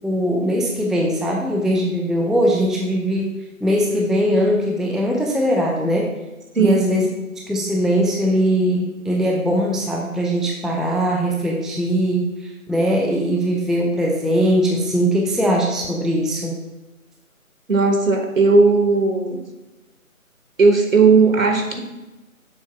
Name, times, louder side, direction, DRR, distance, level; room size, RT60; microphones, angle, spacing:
voice 1, 0.0-3.3 3.6-6.1 6.6-7.1 7.5-16.6, equal, ahead, -1 dB, 0.4 m, -20 dB
voice 2, 17.7-19.4 20.6-21.8, right 4 dB, 65° right, 4 dB, 1.3 m, -16 dB
7.0 x 3.3 x 5.7 m, 1.0 s
figure-of-eight pair, 155°, 42 cm